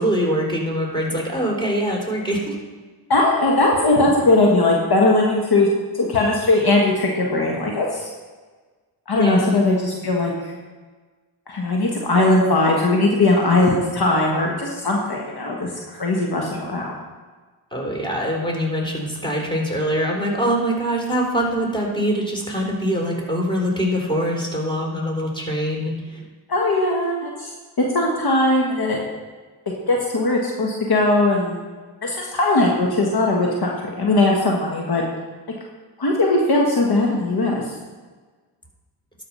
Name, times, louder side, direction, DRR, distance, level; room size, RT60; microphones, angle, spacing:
voice 1, 0.0-2.6 9.2-9.6 17.7-26.2, equal, 10° left, -1 dB, 3.5 m, -23 dB
voice 2, 3.1-5.7 5.9-8.1 9.1-10.5 11.5-16.9 26.5-27.5 27.9-29.0 29.9-31.6 32.0-35.0 36.0-37.7, left 2 dB, 50° left, -1 dB, 1.6 m, -19 dB
12.0 x 5.1 x 5.6 m, 1.4 s
cardioid pair, 50°, 48 cm